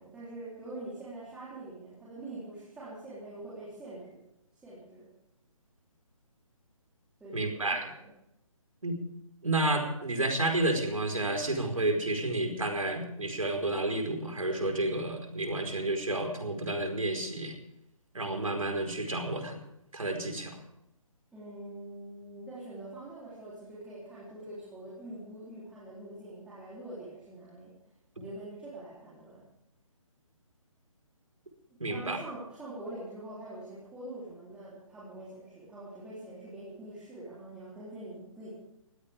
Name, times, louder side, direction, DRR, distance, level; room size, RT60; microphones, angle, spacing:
voice 1, 0.0-4.2 4.6-5.1 7.2-8.1 21.3-27.7 28.2-29.4 31.9-38.5, right 1 dB, 5° right, -9 dB, 3.7 m, -44 dB
voice 2, 7.3-7.9 8.8-9.0 9.4-17.5 18.1-19.6 19.9-20.6 31.8-32.2, right 2 dB, 70° right, 4 dB, 4.9 m, -30 dB
21.0 x 16.5 x 3.6 m, 0.84 s
figure-of-eight pair, 140°, 18 cm